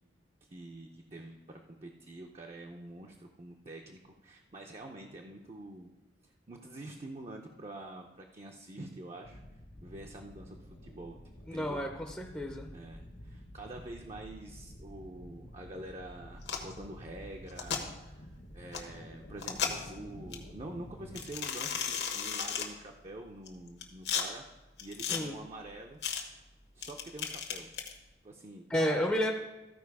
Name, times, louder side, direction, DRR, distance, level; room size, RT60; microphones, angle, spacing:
voice 1, 0.4-5.9 6.2-9.4 9.8-11.2 11.5-11.8 12.7-24.5 24.8-26.0 26.7-27.7 28.2-29.1, right 2 dB, 35° right, 1 dB, 0.6 m, -46 dB
sound 1, 9.2-21.2, equal, 85° left, 1.1 m, -50 dB
voice 2, 11.5-12.7 25.1-25.4 28.7-29.3, equal, 5° left, 0 dB, 0.6 m, -31 dB
sound 2, 16.4-16.7 17.5-17.8 18.7-18.8 19.4-19.9 20.3-20.4 21.2-22.7 23.5-24.2 24.8-25.2 26.0-26.2 26.8-27.9, left 7 dB, 65° left, 1.2 m, -34 dB
14.0 x 5.0 x 4.7 m, 1.1 s
head